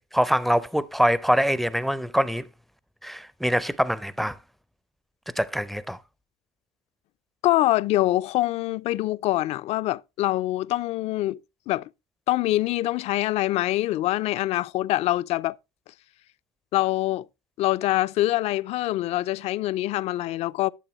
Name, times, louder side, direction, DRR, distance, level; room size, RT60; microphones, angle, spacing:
voice 1, 0.1-2.5 3.0-4.4 5.4-6.0, equal, ahead, 0.5 m, -24 dB
voice 2, 7.4-11.4 11.7-11.9 12.3-15.6 16.7-17.3 17.6-20.7, left 16 dB, 55° left, 0.4 m, -24 dB
12.0 x 6.8 x 3.0 m
supercardioid pair, 100°, 13 cm